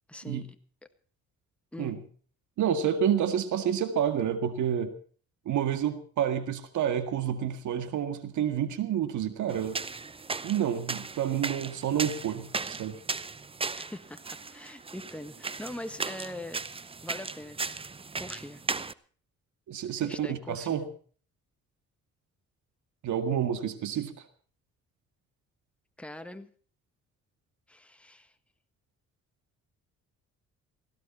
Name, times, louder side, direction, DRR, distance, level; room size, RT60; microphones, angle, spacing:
voice 1, 0.1-0.6 1.7-2.0 13.8-16.6 17.0-17.9 18.1-18.6 20.0-20.8 26.0-26.5 27.7-28.3, left 1 dB, 5° left, 8 dB, 1.6 m, -42 dB
voice 2, 2.6-4.9 5.5-9.8 10.4-13.0 19.7-20.9 23.0-24.1, right 9 dB, 75° right, 9 dB, 1.9 m, -29 dB
sound 1, 9.5-18.9, right 4 dB, 20° right, 0.7 m, -37 dB
18.0 x 15.5 x 4.4 m, 0.43 s
cardioid pair, 90°, 30 cm